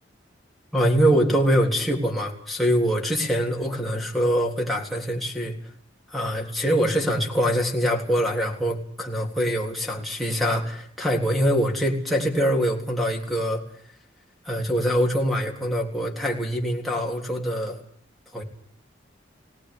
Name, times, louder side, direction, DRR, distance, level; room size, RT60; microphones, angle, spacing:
voice 1, 0.7-5.5 6.1-13.6 14.5-17.8 18.3-18.4, equal, ahead, -2 dB, 3.6 m, -24 dB
21.5 x 18.0 x 9.9 m, 0.62 s
head